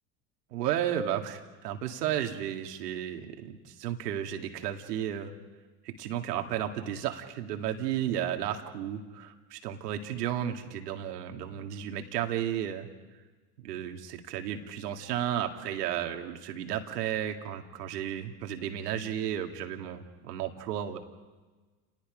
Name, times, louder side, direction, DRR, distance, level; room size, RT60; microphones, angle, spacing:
voice 1, 0.5-5.3 5.8-12.9 13.6-21.0, right 10 dB, 80° right, 4 dB, 2.2 m, -33 dB
30.0 x 19.0 x 5.1 m, 1.3 s
hypercardioid pair, 80°, 47 cm